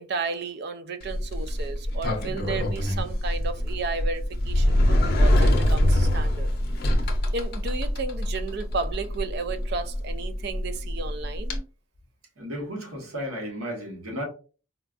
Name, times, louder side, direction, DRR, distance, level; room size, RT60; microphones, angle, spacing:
voice 1, 0.0-6.5 7.3-11.7, right 4 dB, 50° right, 0.3 m, -33 dB
Sliding door, 1.0-11.6, left 1 dB, 45° left, 0.6 m, -24 dB
voice 2, 12.4-14.2, equal, 80° right, 1.2 m, -34 dB
4.3 x 2.3 x 2.4 m
head